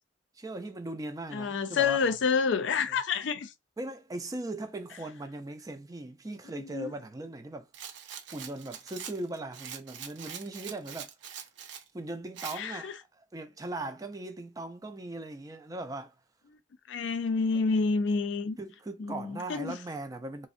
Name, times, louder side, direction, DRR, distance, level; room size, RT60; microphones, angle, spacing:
voice 1, 0.4-2.1 2.9-3.0 3.8-7.7 8.3-11.1 11.9-16.1 18.6-20.5, right 2 dB, 20° right, 0.4 m, -39 dB
voice 2, 1.3-3.5 6.6-6.9 12.6-12.9 16.9-18.6 19.0-19.8, left 5 dB, 75° left, 0.4 m, -28 dB
Rattle, 7.7-11.9 12.4-12.6, right 8 dB, 75° right, 0.5 m, -43 dB
3.4 x 2.1 x 2.5 m
head